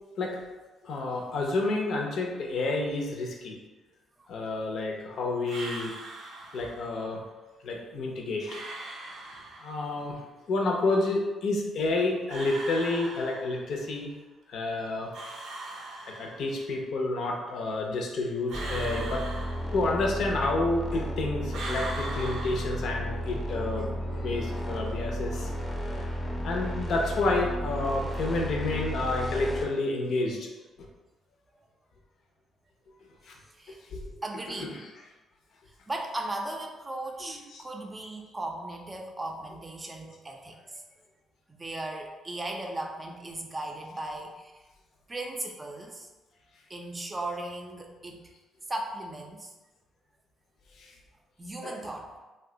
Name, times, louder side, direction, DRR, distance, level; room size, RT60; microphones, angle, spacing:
voice 1, 0.8-3.6 4.3-5.9 6.5-7.2 7.6-8.6 9.6-10.2 10.5-14.1 14.5-15.1 16.1-19.2 19.7-25.5 25.8-26.2 26.4-30.5 33.3-33.4 33.9-35.1 37.2-37.6 50.8-50.9 51.6-51.9, left 2 dB, 70° left, 0 dB, 0.6 m, -30 dB
sound 1, 5.5-6.9 8.5-10.0 12.3-13.8 15.1-16.7 18.5-20.2 21.5-23.3, right 2 dB, 85° right, 0.6 m, -40 dB
sound 2, 18.5-29.6, equal, 20° left, 0.6 m, -33 dB
voice 2, 34.2-34.8 35.9-40.9 41.5-44.6 45.1-46.1 46.7-48.2 48.7-49.5 51.4-52.1, right 2 dB, 20° right, 2 dB, 0.5 m, -37 dB
2.6 x 2.2 x 3.7 m, 1.2 s
cardioid pair, 90°, 0 cm